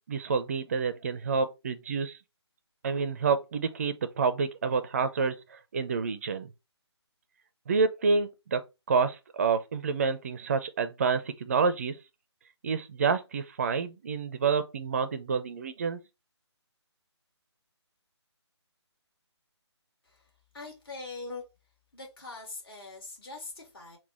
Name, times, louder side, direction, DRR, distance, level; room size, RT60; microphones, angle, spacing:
voice 1, 0.1-2.2 2.8-6.5 7.7-8.6 8.9-12.0 12.6-16.0, right 5 dB, 30° right, 0.4 m, -28 dB
voice 2, 20.5-21.4 21.9-24.0, left 3 dB, 50° left, 1.9 m, -42 dB
3.9 x 2.3 x 4.3 m
figure-of-eight pair, 145°, 15 cm